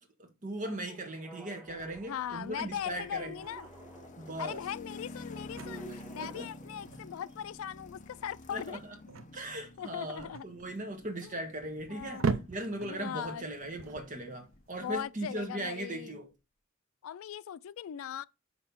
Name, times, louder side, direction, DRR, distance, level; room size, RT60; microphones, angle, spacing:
voice 1, 0.2-3.3 4.2-4.6 5.9-6.5 8.5-8.9 9.3-12.2 12.5-16.3, right 1 dB, 40° right, 1.6 m, -39 dB
sound 1, 0.6-7.4, right 4 dB, 10° right, 1.5 m, -53 dB
sound 2, 1.6-14.8, right 4 dB, 70° right, 0.6 m, -41 dB
sound 3, 1.9-15.1, left 2 dB, 35° left, 0.7 m, -50 dB
voice 2, 2.1-3.7 4.4-8.8 9.8-10.5 11.2-11.4 11.9-12.5 12.8-13.5 14.8-16.2 17.0-18.2, left 9 dB, 80° left, 0.3 m, -39 dB
5.7 x 5.5 x 4.4 m
head